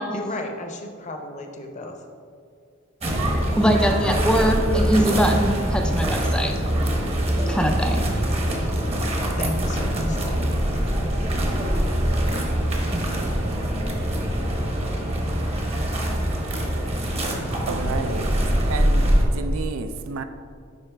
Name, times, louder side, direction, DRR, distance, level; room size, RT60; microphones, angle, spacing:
voice 1, 0.1-2.0 9.4-10.4, left 1 dB, 35° left, 3 dB, 0.7 m, -34 dB
sound 1, 3.0-19.2, equal, 30° right, 0.9 m, -23 dB
voice 2, 3.6-6.5 7.5-8.0, equal, 5° left, 4 dB, 0.3 m, -22 dB
voice 3, 17.7-18.4 18.7-19.1 19.3-20.2, right 4 dB, 80° right, 9 dB, 0.4 m, -30 dB
10.5 x 4.0 x 3.3 m, 2.3 s
head